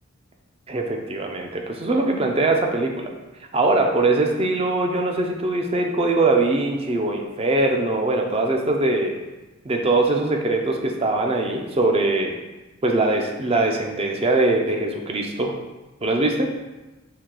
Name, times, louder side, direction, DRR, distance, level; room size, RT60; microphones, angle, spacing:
voice 1, 0.7-3.1 3.5-9.1 9.6-12.3 12.8-15.6 16.0-16.5, right 2 dB, 30° right, 2 dB, 0.4 m, -22 dB
4.6 x 2.7 x 3.7 m, 1.1 s
head